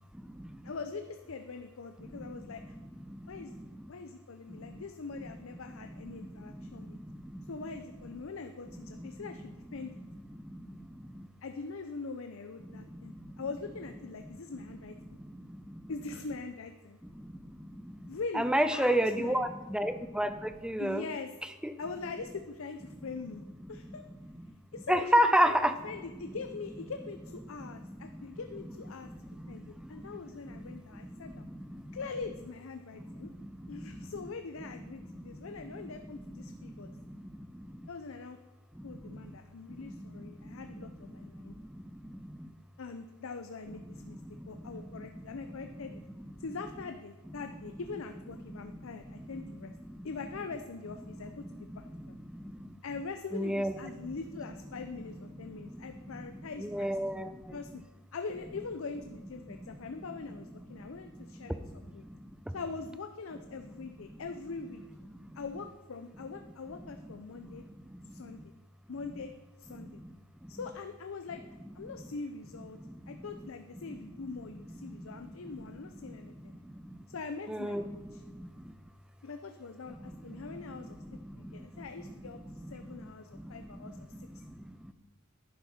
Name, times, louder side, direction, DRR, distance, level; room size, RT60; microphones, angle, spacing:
voice 1, 0.1-0.7 2.0-3.9 4.5-4.8 5.7-7.5 8.8-9.4 10.0-10.1 10.4-11.3 12.7-13.4 15.2-15.9 17.1-21.1 21.6-21.7 23.9-24.0 24.4-24.5 24.9-25.8 27.6-28.3 29.1-30.2 30.5-32.0 33.0-34.1 35.2-35.9 36.3-37.8 38.8-39.4 39.7-40.9 41.1-42.5 44.1-45.2 45.9-46.2 48.5-49.6 49.9-50.1 51.2-52.7 53.3-54.1 55.4-57.6 59.6-59.7 60.8-62.5 64.1-64.2 65.1-65.4 67.4-68.4 69.7-70.1 70.4-70.5 72.8-73.3 73.9-74.0 74.7-75.5 76.0-77.0 77.5-78.7 80.1-80.6 81.0-82.1 82.4-83.1 83.3-84.9, equal, 5° right, 10 dB, 0.5 m, -36 dB
voice 2, 0.6-2.7 3.3-3.5 3.9-7.0 7.5-10.0 11.4-15.0 15.9-17.0 18.1-19.4 20.8-21.3 21.8-23.4 23.7-24.0 24.7-25.1 25.4-25.6 25.8-31.5 31.9-33.3 33.7-36.9 37.9-38.4 38.8-41.5 42.8-44.2 44.5-46.0 46.4-49.7 50.0-52.2 52.8-56.9 57.5-57.8 58.1-62.0 62.5-64.8 65.3-67.6 68.0-68.5 68.9-69.3 69.6-70.0 70.5-71.4 71.7-72.8 73.1-76.5 77.1-78.2 79.2-82.4 82.7-84.4, left 4 dB, 80° left, 7 dB, 0.6 m, -42 dB
10.5 x 10.5 x 4.3 m, 1.1 s
head